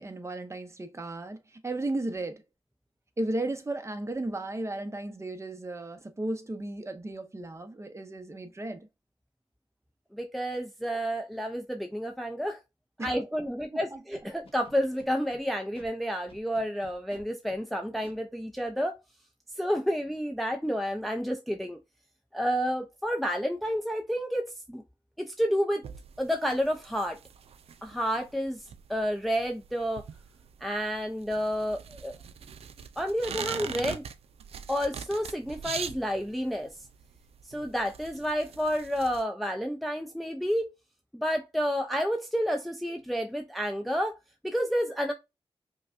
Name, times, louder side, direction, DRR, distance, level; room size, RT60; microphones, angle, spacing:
voice 1, 0.0-1.4 1.6-2.4 3.2-8.9 13.7-14.0, right 2 dB, 30° right, 0.8 m, -34 dB
voice 2, 10.1-12.6 13.0-18.9 19.6-21.8 22.3-24.8 25.2-25.8 26.2-27.2 27.8-30.0 30.6-32.1 33.0-34.0 34.7-36.7 37.5-40.7 41.1-44.1 44.4-45.1, equal, ahead, 0.5 m, -30 dB
Scratching (performance technique), 14.1-15.4 15.7-15.9 16.3-17.6 18.0-18.1, left 2 dB, 75° left, 1.1 m, -52 dB
scissors cutting paper, 25.8-39.2, right 7 dB, 90° right, 0.4 m, -42 dB
5.1 x 2.2 x 2.5 m
cardioid pair, 60°, 10 cm